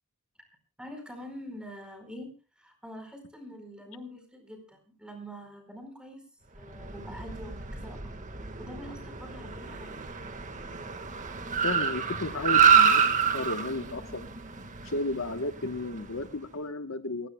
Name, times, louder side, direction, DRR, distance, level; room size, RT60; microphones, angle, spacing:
voice 1, 0.8-6.2 6.6-8.0 8.4-10.0, equal, 5° right, 5 dB, 4.7 m, -45 dB
Car, 6.7-16.2, right 6 dB, 35° right, 1.6 m, -27 dB
voice 2, 11.6-13.1 13.3-14.3 14.8-17.3, left 2 dB, 70° left, 10 dB, 1.1 m, -33 dB
28.5 x 16.0 x 2.2 m, 0.32 s
head